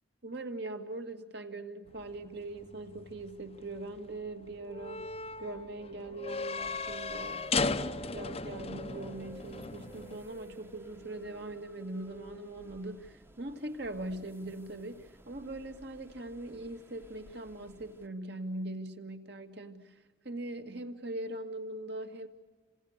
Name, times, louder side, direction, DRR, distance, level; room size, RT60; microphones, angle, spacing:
voice 1, 0.2-5.1 5.4-20.0 20.2-22.3, right 2 dB, 55° right, 6 dB, 2.1 m, -41 dB
sound 1, 1.9-10.2, left 4 dB, 30° left, 0.7 m, -37 dB
sound 2, 6.6-18.1, right 1 dB, 10° right, 1.1 m, -52 dB
29.0 x 26.5 x 6.6 m, 1.3 s
head